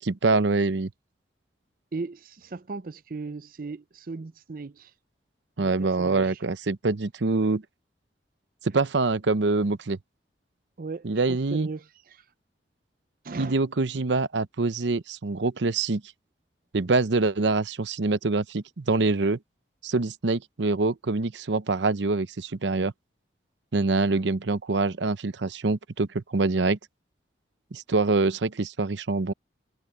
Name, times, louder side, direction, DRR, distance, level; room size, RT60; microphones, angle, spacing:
voice 1, 0.1-0.9 5.6-7.6 8.6-10.0 11.0-11.7 13.4-16.0 16.7-19.4 19.8-22.9 23.7-26.8 27.7-29.3, right 3 dB, 80° right, 0.8 m, -25 dB
voice 2, 1.9-4.9 5.6-6.4 8.7-8.8 10.8-12.2 13.2-13.6, right 3 dB, 50° right, 0.6 m, -37 dB
head